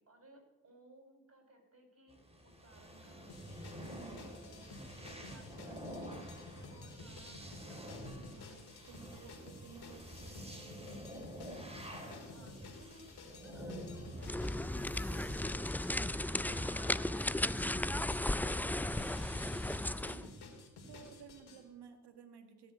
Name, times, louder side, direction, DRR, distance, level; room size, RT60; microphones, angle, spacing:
voice 1, 0.0-3.7 4.5-8.6 9.2-9.3 9.7-10.1 12.3-16.4 17.2-20.4, right 1 dB, 35° right, 2 dB, 6.6 m, -62 dB
sound 1, 2.1-20.2, equal, 15° right, 4.0 m, -50 dB
sound 2, 3.3-21.6, left 2 dB, 75° left, 2.9 m, -52 dB
voice 2, 3.8-4.4 6.8-7.5 8.2-11.3 16.5-17.6 20.1-20.5 20.9-22.7, right 6 dB, 85° right, 7 dB, 1.8 m, -57 dB
sound 3, 14.2-20.3, left 1 dB, 5° left, 0.4 m, -35 dB
17.0 x 7.3 x 8.2 m, 1.1 s
supercardioid pair, 45°, 39 cm